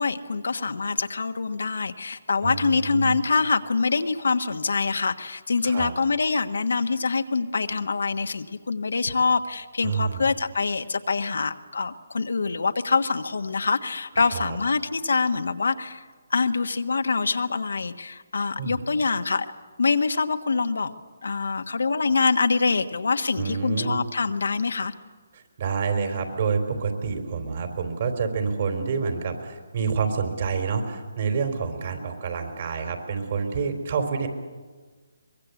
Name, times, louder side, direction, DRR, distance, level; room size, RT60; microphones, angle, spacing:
voice 1, 0.0-16.0 16.3-19.5 19.8-20.9 21.2-24.9, left 4 dB, 75° left, 8 dB, 1.4 m, -25 dB
voice 2, 2.4-3.2 5.6-5.9 9.8-10.3 14.2-14.6 18.6-18.8 23.4-24.0 25.3-34.3, right 5 dB, 50° right, 6 dB, 4.1 m, -28 dB
23.5 x 21.5 x 8.4 m, 1.4 s
figure-of-eight pair, 150°, 0 cm